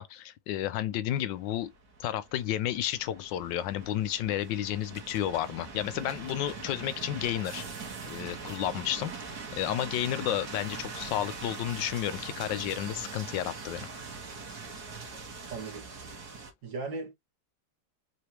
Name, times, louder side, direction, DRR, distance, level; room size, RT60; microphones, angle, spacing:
voice 1, 0.0-1.7 2.0-7.6 8.1-9.1 9.6-13.9, left 12 dB, 75° left, 1.2 m, -32 dB
sound 1, 1.3-16.5, right 4 dB, 55° right, 1.9 m, -42 dB
voice 2, 15.5-15.9 16.6-17.1, right 3 dB, 70° right, 2.4 m, -37 dB
4.8 x 3.2 x 2.8 m
omnidirectional pair, 2.1 m